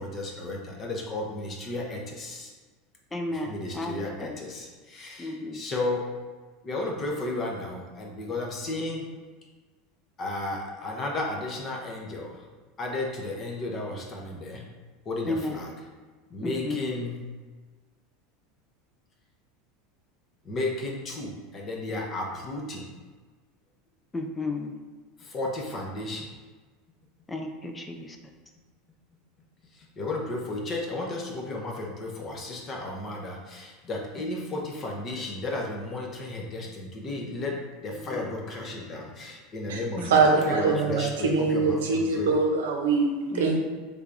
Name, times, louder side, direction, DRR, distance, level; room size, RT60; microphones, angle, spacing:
voice 1, 0.0-2.5 3.3-6.0 6.6-9.1 10.2-12.4 12.8-14.6 15.1-15.7 16.3-17.2 20.4-22.9 25.2-26.3 30.0-37.6 37.8-42.3, left 2 dB, 35° left, 0 dB, 0.8 m, -33 dB
voice 2, 3.1-4.4 5.2-5.6 15.3-15.6 16.4-16.9 24.1-24.7 27.3-28.2 38.0-38.3 40.0-41.0 41.3-41.4 43.3-43.6, left 2 dB, 15° left, 3 dB, 0.4 m, -33 dB
voice 3, 40.1-43.6, right 4 dB, 85° right, 1 dB, 0.6 m, -23 dB
3.5 x 3.2 x 2.6 m, 1.4 s
supercardioid pair, 105°, 0 cm